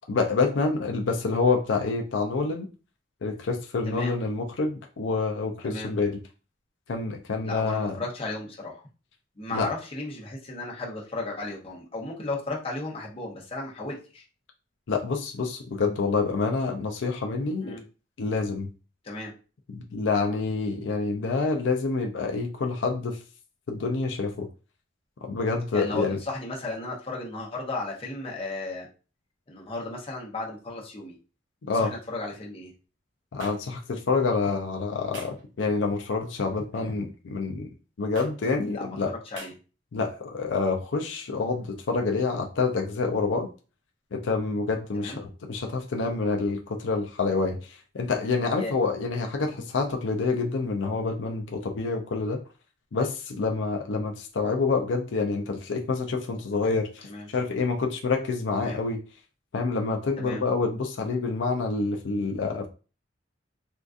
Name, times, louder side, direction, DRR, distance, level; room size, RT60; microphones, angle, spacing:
voice 1, 0.1-2.7 3.2-6.2 6.9-8.0 9.5-9.7 14.9-17.8 18.2-18.7 19.7-23.2 23.7-24.5 25.2-26.2 31.6-31.9 33.3-37.7 38.0-39.1 39.9-43.5 44.1-52.4 52.9-57.1 57.3-59.0 59.5-62.7, left 4 dB, 85° left, 3 dB, 0.5 m, -27 dB
voice 2, 7.4-8.7 9.4-14.2 17.6-17.8 19.0-19.3 25.7-28.9 29.5-31.2 31.7-32.7 38.7-39.5 44.9-45.3 48.5-48.7 57.0-57.3 58.6-58.8 60.2-60.4, left 2 dB, 30° left, -3 dB, 0.8 m, -35 dB
sound 1, 33.4-33.6 35.1-35.4 36.7-37.0 38.2-38.3 39.4-39.5, right 2 dB, 80° right, 0.9 m, -41 dB
3.7 x 2.5 x 2.4 m, 0.34 s
head